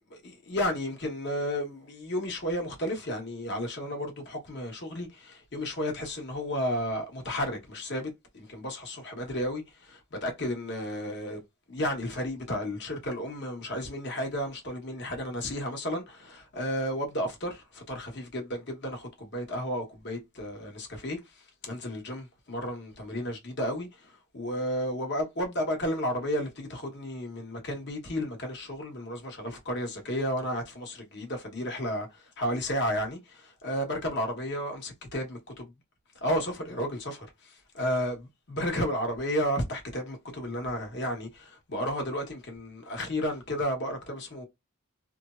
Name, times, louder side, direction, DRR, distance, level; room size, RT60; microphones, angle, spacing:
voice 1, 0.2-11.4 11.7-21.2 21.6-23.9 24.3-32.1 32.4-35.4 36.2-37.3 37.7-44.4, equal, 55° left, 1.2 m, -32 dB
3.2 x 2.0 x 2.5 m
head